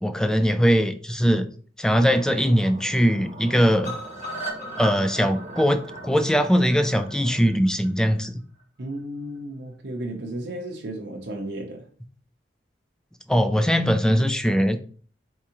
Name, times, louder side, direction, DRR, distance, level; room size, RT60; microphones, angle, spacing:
voice 1, 0.0-1.5 1.8-3.9 4.8-8.4 13.3-14.8, equal, 5° left, 0.3 m, -21 dB
sound 1, 1.9-7.4, right 1 dB, 40° right, 1.0 m, -43 dB
sound 2, 3.8-7.9 8.2-8.3 8.6-8.7 9.0-9.1, right 1 dB, 40° left, 1.9 m, -37 dB
voice 2, 8.8-11.9, right 1 dB, 75° right, 0.7 m, -34 dB
4.7 x 3.5 x 2.9 m
head